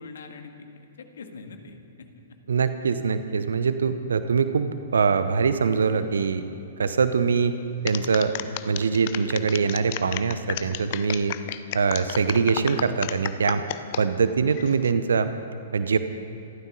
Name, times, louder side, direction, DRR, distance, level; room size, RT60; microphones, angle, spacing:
voice 1, 0.0-2.4, left 4 dB, 65° left, 5 dB, 1.9 m, -43 dB
voice 2, 2.5-6.5 6.8-7.6 7.8-8.3 8.6-11.3 11.7-13.6 14.0-15.3 15.7-16.0, right 5 dB, 70° right, 11 dB, 0.8 m, -23 dB
sound 1, 7.9-14.0 14.5-14.9, left 14 dB, 45° left, 0.7 m, -33 dB
27.0 x 13.5 x 4.0 m, 3.0 s
figure-of-eight pair, 110°, 0 cm